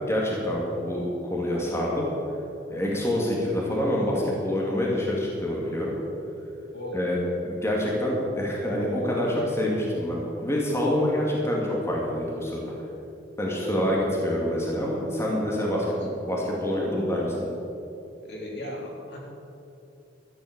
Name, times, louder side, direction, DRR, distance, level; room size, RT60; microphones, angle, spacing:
voice 1, 0.1-2.1 2.7-5.9 6.9-7.2 7.4-12.7 13.4-14.0 14.2-15.9 16.2-17.5, left 1 dB, 15° left, -4 dB, 2.3 m, -26 dB
voice 2, 6.7-7.1 13.6-13.9 15.7-15.9 18.2-19.2, left 1 dB, 65° left, -3 dB, 3.6 m, -36 dB
13.5 x 8.4 x 8.7 m, 2.8 s
head